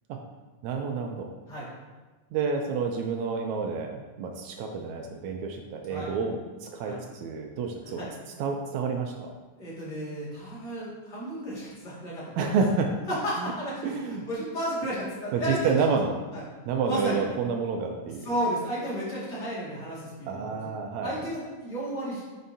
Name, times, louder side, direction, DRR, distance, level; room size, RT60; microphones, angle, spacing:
voice 1, 0.6-1.3 2.3-8.1 8.4-9.3 12.4-12.9 13.4-13.5 13.8-14.3 15.3-16.1 16.7-18.3 20.3-21.2, right 5 dB, 80° right, 3 dB, 1.7 m, -29 dB
voice 2, 9.5-12.2 13.1-15.7 16.3-16.4 16.8-17.2 18.2-20.7 21.0-22.2, equal, 35° left, -9 dB, 2.5 m, -33 dB
9.4 x 5.3 x 2.8 m, 1.3 s
omnidirectional pair, 3.7 m